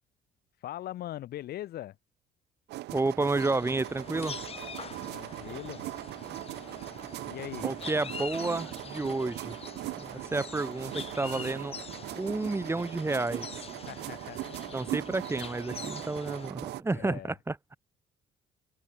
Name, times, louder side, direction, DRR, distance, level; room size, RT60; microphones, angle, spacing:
voice 1, 0.6-2.0 5.1-5.8 7.3-7.7 13.9-14.6 16.9-17.4, left 13 dB, 65° left, 2.7 m, -40 dB
sound 1, 2.7-16.8, right 18 dB, 80° right, 2.4 m, -40 dB
voice 2, 2.9-4.4 7.6-9.6 10.0-11.8 12.1-13.6 14.7-17.8, right 2 dB, 15° right, 2.1 m, -31 dB
sound 2, 3.4-16.5, left 6 dB, 35° left, 3.5 m, -45 dB
cardioid pair, 110°, 17 cm